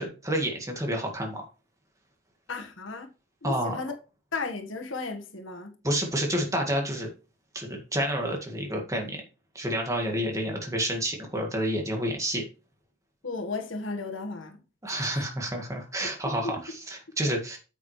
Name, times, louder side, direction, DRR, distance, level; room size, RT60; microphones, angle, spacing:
voice 1, 0.0-1.5 3.4-3.8 5.8-7.1 7.5-9.2 9.6-12.4 14.8-17.6, equal, 15° right, 1.8 m, -29 dB
voice 2, 2.5-3.1 3.4-3.9 4.3-5.7 13.2-14.6 16.4-16.5, left 3 dB, 85° left, 1.5 m, -34 dB
9.1 x 7.3 x 3.2 m
head